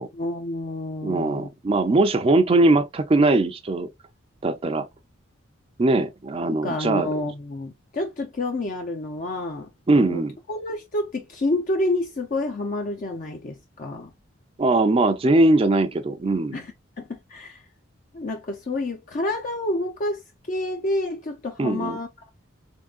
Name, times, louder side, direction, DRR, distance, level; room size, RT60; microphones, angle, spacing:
voice 1, 0.1-1.5 6.5-9.7 9.9-10.2 10.5-14.1 16.5-17.6 18.1-22.1, left 2 dB, 40° left, 0.5 m, -29 dB
voice 2, 1.0-3.9 4.4-4.9 5.8-7.1 9.9-10.4 14.6-16.6 21.6-22.0, right 2 dB, 30° right, 0.4 m, -20 dB
3.6 x 3.6 x 2.4 m
head